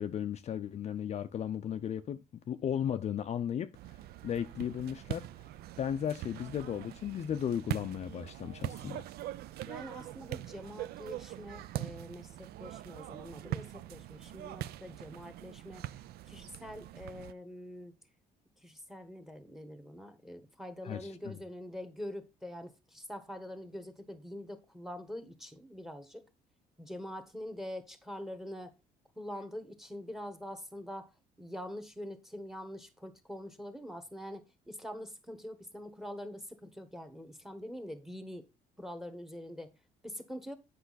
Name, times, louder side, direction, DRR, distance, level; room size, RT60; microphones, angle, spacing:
voice 1, 0.0-4.0 4.2-5.3 5.8-9.0 20.8-21.3, left 9 dB, 40° left, 0.5 m, -35 dB
sound 1, 3.7-17.3, right 14 dB, 70° right, 0.4 m, -42 dB
voice 2, 9.7-16.0 16.3-17.9 18.6-26.2 26.8-28.7 29.2-31.1 31.4-38.5 38.8-39.7 40.0-40.6, equal, ahead, 1.2 m, -44 dB
8.0 x 5.4 x 4.0 m
cardioid pair, 110°, 17 cm